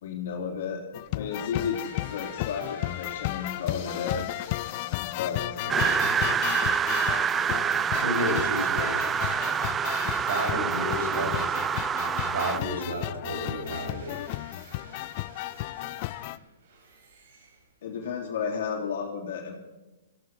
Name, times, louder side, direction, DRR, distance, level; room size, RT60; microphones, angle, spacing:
voice 1, 0.0-0.8 1.1-4.3 5.0-5.7 17.8-19.6, left 6 dB, 65° left, 1 dB, 3.1 m, -33 dB
sound 1, 0.9-16.4, left 18 dB, 45° left, 0.4 m, -34 dB
sound 2, 1.5-11.6 12.0-18.0, right 3 dB, 65° right, 5.0 m, -52 dB
voice 2, 5.6-6.2 8.0-9.0 10.3-11.6 12.3-14.6 14.9-15.0, equal, 85° right, 2 dB, 5.9 m, -32 dB
sound 3, 5.7-12.6, right 7 dB, 15° right, 0.5 m, -27 dB
17.5 x 15.0 x 4.5 m, 1.1 s
hypercardioid pair, 135°, 0 cm